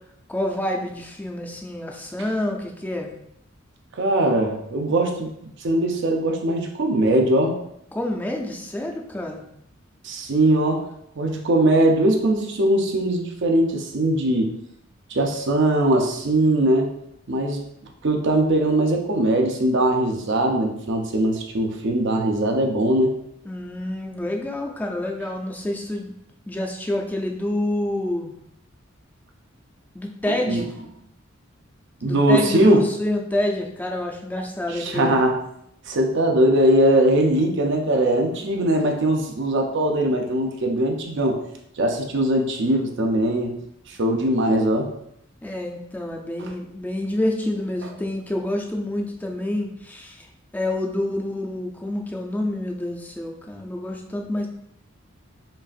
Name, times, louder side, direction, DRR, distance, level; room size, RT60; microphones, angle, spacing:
voice 1, 0.3-3.1 7.9-9.5 23.4-26.1 26.5-28.3 29.9-30.7 32.0-35.2 45.4-50.3 50.5-54.5, left 1 dB, 10° left, 1 dB, 0.4 m, -27 dB
voice 2, 4.0-5.3 5.6-7.6 10.0-10.9 11.2-14.6 15.1-16.9 17.3-17.6 18.0-23.2 30.3-30.6 32.0-32.8 34.7-35.4 35.9-41.4 41.8-43.5 43.9-44.9 46.4-46.5, right 1 dB, 60° right, 3 dB, 0.6 m, -21 dB
5.3 x 2.4 x 2.5 m, 0.76 s
head